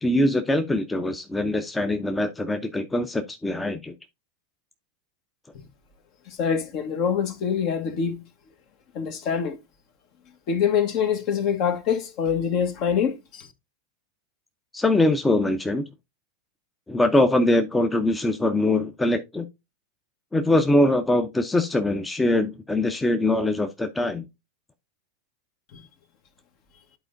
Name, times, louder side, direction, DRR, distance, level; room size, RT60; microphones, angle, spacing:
voice 1, 0.0-3.9 14.7-15.8 16.9-19.4 20.3-24.2, left 1 dB, 10° left, 0.7 m, -22 dB
voice 2, 6.4-8.1 8.9-9.6 10.5-13.5 25.7-25.9, left 7 dB, 50° left, 1.3 m, -25 dB
11.0 x 4.4 x 2.6 m
figure-of-eight pair, 90°, 0 cm